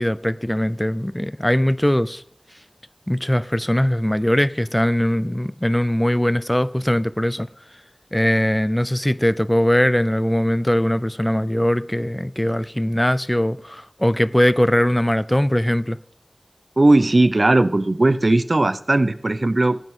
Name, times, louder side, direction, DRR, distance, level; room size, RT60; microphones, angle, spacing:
voice 1, 0.0-2.2 3.1-7.5 8.1-16.0, equal, 15° left, 0.5 m, -20 dB
voice 2, 16.8-19.8, right 2 dB, 65° right, 0.7 m, -17 dB
17.0 x 8.3 x 3.8 m
wide cardioid pair, 45°, 0 cm